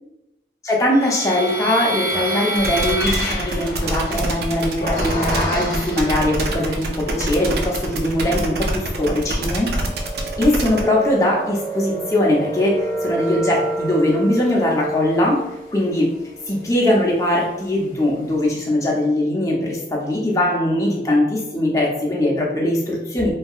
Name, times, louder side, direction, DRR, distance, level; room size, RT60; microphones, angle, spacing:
voice 1, 0.6-9.7 10.4-15.4 15.7-16.1 16.5-23.3, left 1 dB, 20° left, -3 dB, 0.7 m, -20 dB
sound 1, 0.9-6.4 7.0-7.8 8.3-17.5, right 1 dB, 50° left, 1.0 m, -29 dB
sound 2, 2.5-10.8, right 2 dB, 60° right, 0.4 m, -25 dB
3.4 x 2.7 x 2.4 m, 0.94 s
head